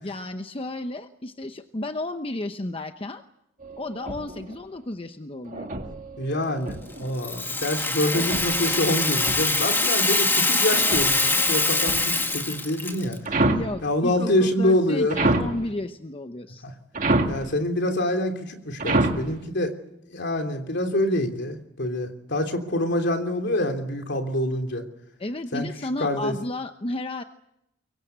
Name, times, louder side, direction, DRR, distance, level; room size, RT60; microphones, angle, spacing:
voice 1, 0.0-3.2 3.8-5.7 13.4-16.6 25.2-27.2, left 1 dB, 30° left, 7 dB, 0.9 m, -32 dB
sound 1, 3.6-4.6 5.5-7.2 8.1-9.7 10.6-12.3 13.2-13.8 15.1-15.7 16.9-17.5 18.8-19.3, right 2 dB, 45° right, 2.1 m, -28 dB
voice 2, 6.2-13.2 13.8-15.3 16.6-16.7 17.3-19.7 20.1-24.8 25.5-25.7 26.0-26.3, left 1 dB, 60° left, 5 dB, 3.2 m, -26 dB
Rattle (instrument), 7.2-13.2, left 2 dB, 10° left, 2.1 m, -23 dB
24.0 x 23.0 x 8.1 m, 0.83 s
head